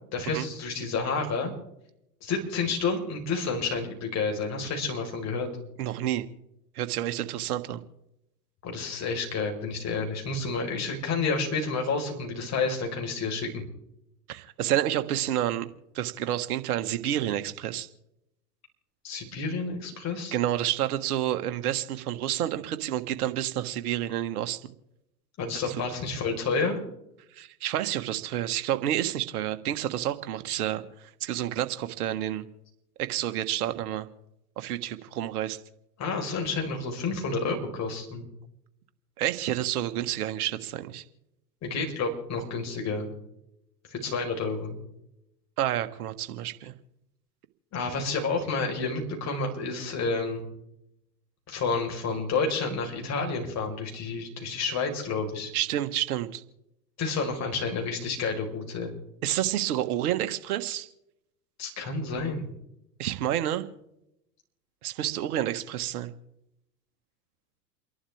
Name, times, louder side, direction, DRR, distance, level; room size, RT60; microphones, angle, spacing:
voice 1, 0.1-1.5 2.2-5.5 8.6-13.7 19.0-20.3 25.4-26.8 36.0-38.2 41.6-43.1 43.9-44.8 47.7-50.4 51.5-55.5 57.0-58.9 61.6-62.5, left 4 dB, 30° left, 2 dB, 4.7 m, -30 dB
voice 2, 5.8-6.3 6.7-7.8 14.3-15.7 15.9-17.9 20.3-24.6 25.7-25.8 27.3-30.8 31.2-32.4 33.0-34.1 34.6-35.6 39.2-41.0 45.6-46.7 55.5-56.4 59.2-60.9 63.0-63.6 64.8-66.1, right 12 dB, 60° right, 9 dB, 1.6 m, -29 dB
29.5 x 11.5 x 3.5 m, 0.82 s
hypercardioid pair, 100°, 50 cm